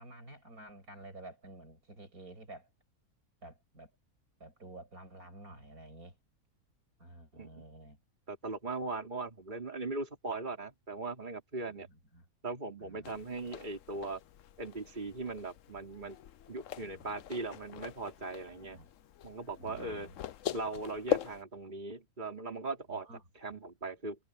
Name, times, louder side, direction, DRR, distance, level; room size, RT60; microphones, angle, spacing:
voice 1, 0.0-2.7 3.4-3.9 4.4-6.2 7.0-8.0 11.6-12.3 12.8-13.2 16.8-17.2 18.7-18.9 19.6-20.2 22.9-23.2, right 2 dB, 70° right, 8.0 m, -51 dB
voice 2, 8.3-11.9 12.4-14.2 14.6-16.1 16.5-18.8 19.2-20.1 20.5-23.1 23.4-24.2, right 3 dB, 30° right, 3.3 m, -39 dB
Barefoot lightweighted person on hardwood floor Running, 13.0-21.4, left 10 dB, 65° left, 1.0 m, -41 dB
omnidirectional pair, 1.6 m